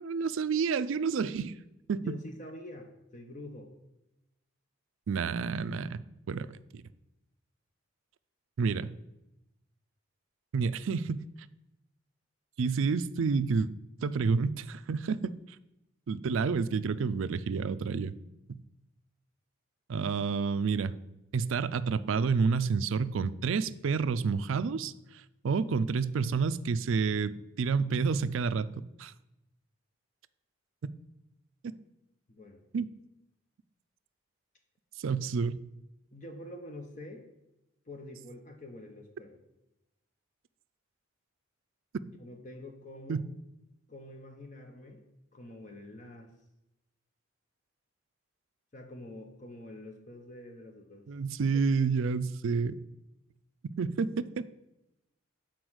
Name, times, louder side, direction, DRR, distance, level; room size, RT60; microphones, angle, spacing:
voice 1, 0.0-1.5 1.9-2.0 5.1-6.0 6.3-6.8 8.6-8.9 10.5-11.2 12.6-13.7 14.0-15.3 16.1-18.1 18.5-18.6 19.9-20.9 21.3-28.7 29.0-29.1 32.7-32.9 35.0-35.6 43.1-43.2 51.1-52.8 53.8-54.5, right 5 dB, 70° right, 14 dB, 0.4 m, -29 dB
voice 2, 1.9-3.7 32.3-32.6 36.1-37.3 37.8-39.4 42.0-43.2 43.9-45.1 45.3-46.3 48.7-51.1, left 1 dB, 35° left, 4 dB, 0.9 m, -46 dB
7.9 x 4.3 x 6.2 m, 0.91 s
head